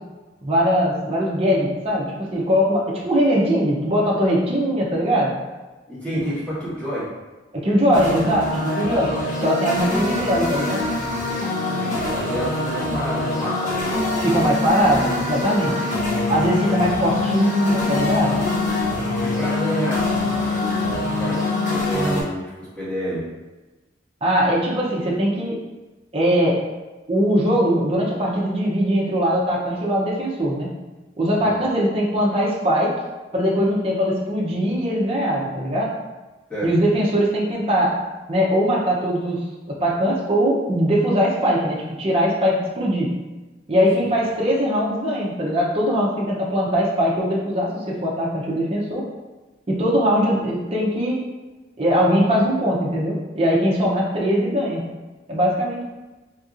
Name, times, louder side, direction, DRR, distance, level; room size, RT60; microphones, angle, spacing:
voice 1, 0.4-5.3 6.1-6.3 7.5-9.1 9.4-10.8 14.2-15.7 16.3-18.4 24.2-25.6 26.1-26.6 27.1-30.7 31.2-32.9 33.3-35.9 36.6-37.9 38.3-39.4 39.7-43.1 43.7-49.0 49.7-51.2 51.8-54.8 55.3-55.8, equal, 30° right, -5 dB, 0.6 m, -21 dB
voice 2, 5.9-7.1 10.1-10.4 11.0-13.8 15.6-15.8 19.2-23.2 31.4-31.5 36.5-36.7 44.0-44.1, equal, 5° left, -11 dB, 1.3 m, -30 dB
sound 1, 7.9-22.2, left 2 dB, 45° left, 0.7 m, -24 dB
3.6 x 2.8 x 2.4 m, 1.2 s
head